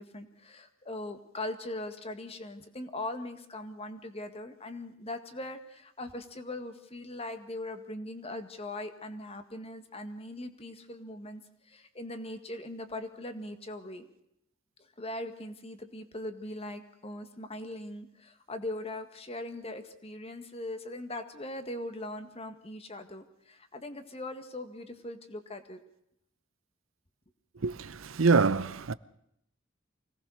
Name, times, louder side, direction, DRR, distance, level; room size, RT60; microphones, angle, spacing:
voice 1, 0.0-14.1 14.8-25.8, left 1 dB, 30° left, 1.9 m, -40 dB
voice 2, 27.6-28.9, right 4 dB, 90° right, 0.7 m, -25 dB
25.0 x 18.5 x 6.5 m
head